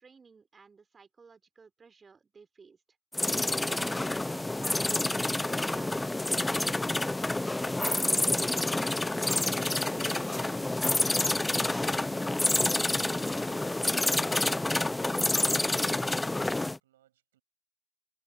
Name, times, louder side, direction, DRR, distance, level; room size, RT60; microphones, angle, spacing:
voice 1, 0.0-2.8 3.5-6.1, right 5 dB, 20° right, 2.6 m, -53 dB
sound 1, 3.1-16.8, left 2 dB, 10° left, 0.7 m, -28 dB
voice 2, 11.3-11.4, right 13 dB, 70° right, 6.7 m, -66 dB
figure-of-eight pair, 75°, 0 cm